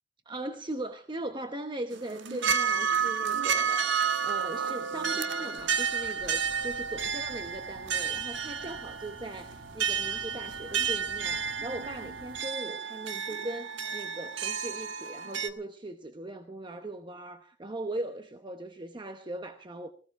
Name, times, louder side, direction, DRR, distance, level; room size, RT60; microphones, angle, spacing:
voice 1, 0.3-19.9, right 1 dB, 25° right, 0.9 m, -39 dB
sound 1, 1.9-15.5, right 6 dB, 80° right, 1.3 m, -31 dB
sound 2, 5.6-12.4, right 1 dB, 55° right, 1.4 m, -51 dB
18.5 x 17.0 x 3.7 m
head